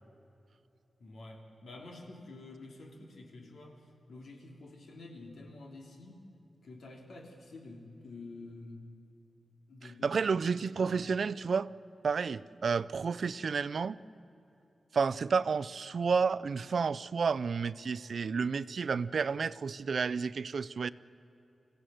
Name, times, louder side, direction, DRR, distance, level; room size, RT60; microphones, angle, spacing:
voice 1, 1.0-6.2 6.6-8.9 9.7-10.4 10.8-11.1, left 2 dB, 85° left, 1 dB, 3.2 m, -49 dB
voice 2, 10.0-11.7 12.0-14.0 14.9-20.9, right 5 dB, 65° right, 16 dB, 0.5 m, -31 dB
24.5 x 16.0 x 7.8 m, 2.9 s
wide cardioid pair, 115°, 0 cm